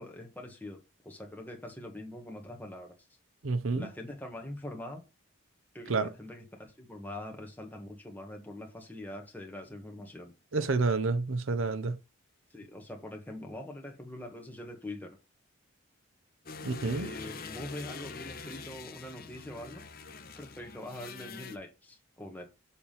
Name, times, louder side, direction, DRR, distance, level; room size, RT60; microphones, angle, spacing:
voice 1, 0.0-2.9 3.7-5.0 5.7-10.3 12.5-15.2 16.8-19.8 20.3-22.4, left 1 dB, 10° left, 1.3 m, -43 dB
voice 2, 3.4-3.9 5.9-6.1 10.5-12.0 16.6-17.1, right 3 dB, 70° right, 0.7 m, -29 dB
sound 1, 16.5-21.6, left 4 dB, 45° left, 0.9 m, -44 dB
7.0 x 3.5 x 5.6 m
head